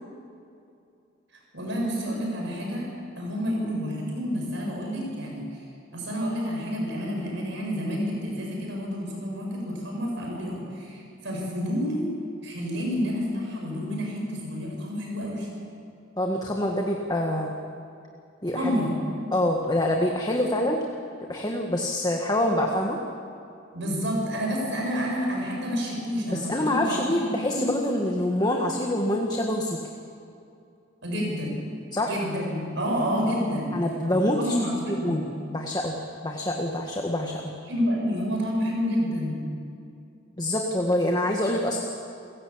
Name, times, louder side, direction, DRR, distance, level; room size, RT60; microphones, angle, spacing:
voice 1, 1.5-2.9 3.2-5.4 5.9-12.0 12.4-15.5 18.5-18.9 23.7-27.7 31.0-31.6 32.0-33.7 34.1-35.2 37.7-39.4, equal, 65° right, -1 dB, 7.7 m, -29 dB
voice 2, 16.2-17.5 18.4-18.8 19.3-20.8 21.3-23.0 26.3-29.8 31.9-32.2 33.7-34.5 34.8-35.2 35.5-36.0 36.2-37.4 40.4-41.8, left 1 dB, 20° left, 1 dB, 1.6 m, -26 dB
29.0 x 15.5 x 8.7 m, 2.5 s
head